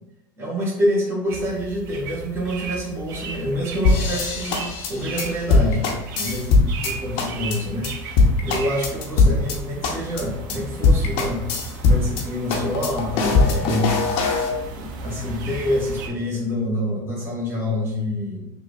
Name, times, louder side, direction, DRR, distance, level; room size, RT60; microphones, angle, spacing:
voice 1, 0.4-4.6 4.9-7.9 8.4-11.4 11.8-13.9 14.7-18.5, left 1 dB, 20° right, -6 dB, 1.4 m, -27 dB
sound 1, 1.3-16.1, right 3 dB, 80° right, 0.7 m, -35 dB
sound 2, 3.8-6.9 7.2-7.6 7.8-7.9 8.2-9.6 9.8-10.2 10.5-10.6 10.8-12.2 12.5-14.5, left 3 dB, 65° left, 0.9 m, -19 dB
6.4 x 2.6 x 2.4 m, 0.90 s
hypercardioid pair, 85°, 11 cm